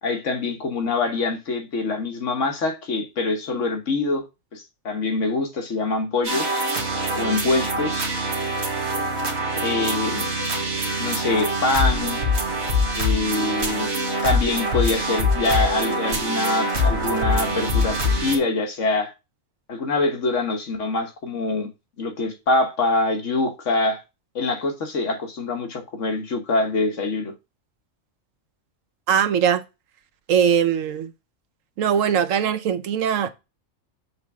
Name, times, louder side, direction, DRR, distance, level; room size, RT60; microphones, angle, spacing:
voice 1, 0.0-4.3 4.5-6.6 7.2-8.1 9.6-10.3 11.0-12.2 12.9-13.9 14.2-19.1 19.7-21.7 22.0-24.0 24.3-27.3, left 2 dB, 70° left, 1.5 m, -24 dB
sound 1, 6.2-18.4, equal, 55° right, 1.6 m, -24 dB
voice 2, 29.1-29.6 30.3-31.1 31.8-33.3, right 8 dB, 75° right, 1.1 m, -20 dB
6.5 x 3.5 x 6.0 m
omnidirectional pair, 1.4 m